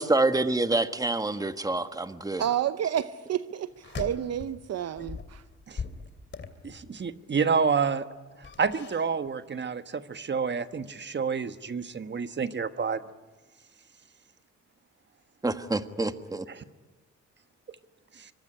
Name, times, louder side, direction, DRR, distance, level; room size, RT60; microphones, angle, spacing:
voice 1, 0.0-2.4 15.4-16.4, right 2 dB, 10° right, 9 dB, 1.5 m, -27 dB
voice 2, 2.4-5.4, right 10 dB, 55° right, 13 dB, 0.8 m, -30 dB
sound 1, 3.7-4.6 5.0-7.1 8.4-9.3 9.5-9.7, left 5 dB, 40° left, 2.8 m, -40 dB
voice 3, 6.6-8.0 8.6-13.0 16.6-16.7 18.2-18.3, right 5 dB, 35° right, 11 dB, 1.3 m, -29 dB
24.0 x 24.0 x 10.0 m, 1.3 s
cardioid pair, 90°, 30 cm